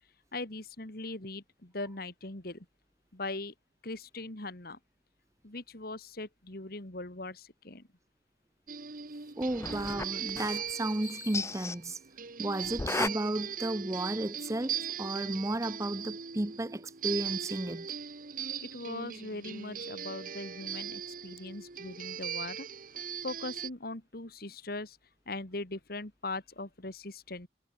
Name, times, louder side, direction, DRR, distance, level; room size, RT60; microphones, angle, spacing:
voice 1, 0.3-2.7 3.1-3.5 3.8-4.8 5.4-7.9 18.6-22.7 23.2-25.0 25.3-27.5, left 2 dB, 55° left, 2.5 m, -40 dB
sound 1, 8.7-23.7, right 8 dB, 50° right, 1.3 m, -39 dB
sound 2, 9.4-10.7 11.0-11.8 12.6-13.1, left 3 dB, 15° left, 0.4 m, -35 dB
voice 2, 9.4-12.0 12.4-17.9, right 1 dB, 15° right, 0.7 m, -33 dB
head